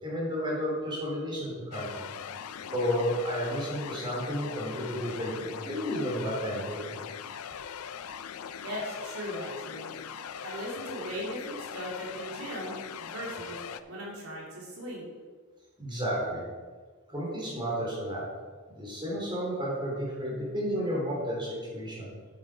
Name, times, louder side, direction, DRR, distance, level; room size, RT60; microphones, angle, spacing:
voice 1, 0.0-2.1 2.7-6.9 15.8-16.4 17.1-18.2 18.8-22.1, equal, 20° right, -5 dB, 3.5 m, -32 dB
sound 1, 1.7-13.8, left 8 dB, 90° left, 0.5 m, -41 dB
voice 2, 8.6-9.9 10.4-13.6 13.9-15.1, equal, 90° right, -3 dB, 3.1 m, -38 dB
9.3 x 8.2 x 4.9 m, 1.5 s
head